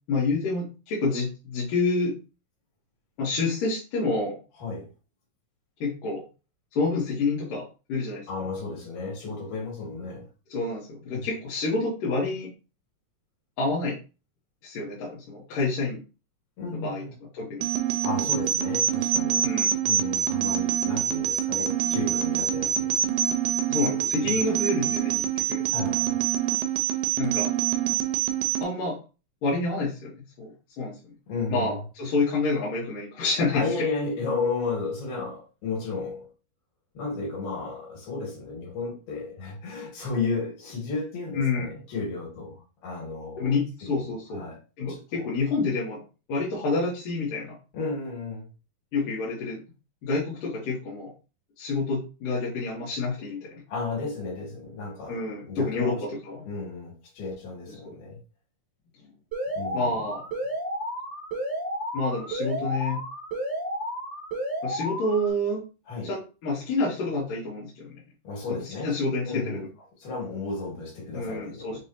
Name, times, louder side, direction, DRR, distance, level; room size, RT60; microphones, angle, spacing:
voice 1, 0.1-2.1 3.2-4.4 5.8-6.2 6.7-8.3 10.5-12.5 13.6-14.0 14.6-16.0 16.8-17.0 17.3-17.7 19.4-19.8 23.7-25.6 27.2-27.5 28.6-29.0 29.4-31.0 31.5-33.6 41.3-41.7 43.4-44.4 44.8-46.0 46.3-47.6 48.9-49.6 50.0-51.1 51.6-53.5 55.1-56.5 57.8-57.9 59.7-60.2 61.9-63.0 64.6-65.6 66.0-67.9 68.8-69.6 71.1-71.8, left 3 dB, 70° left, 2.7 m, -28 dB
voice 2, 8.3-10.3 11.1-11.3 16.6-17.1 18.0-19.5 19.8-23.1 24.2-24.4 25.7-26.2 31.3-31.8 33.5-36.3 37.0-43.6 44.0-44.6 44.9-45.3 47.7-48.5 53.7-55.2 55.5-56.0 56.5-58.2 59.6-59.9 65.9-66.1 68.2-68.9 69.3-69.6 70.0-71.8, left 4 dB, 90° left, 3.6 m, -33 dB
sound 1, 17.6-28.6, right 9 dB, 85° right, 1.7 m, -26 dB
Alarm, 59.3-65.3, right 1 dB, 15° right, 0.6 m, -32 dB
6.8 x 2.3 x 2.8 m
omnidirectional pair, 4.1 m